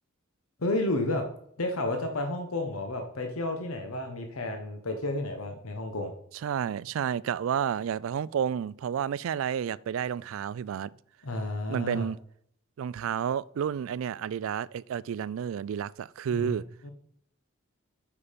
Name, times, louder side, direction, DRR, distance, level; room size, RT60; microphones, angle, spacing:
voice 1, 0.6-1.2 1.6-6.1 11.2-12.1 16.3-16.6 16.8-16.9, left 2 dB, 90° left, 1.1 m, -31 dB
voice 2, 6.4-10.9 11.7-12.2 12.8-16.6, right 8 dB, 70° right, 0.3 m, -31 dB
8.5 x 5.6 x 5.1 m
head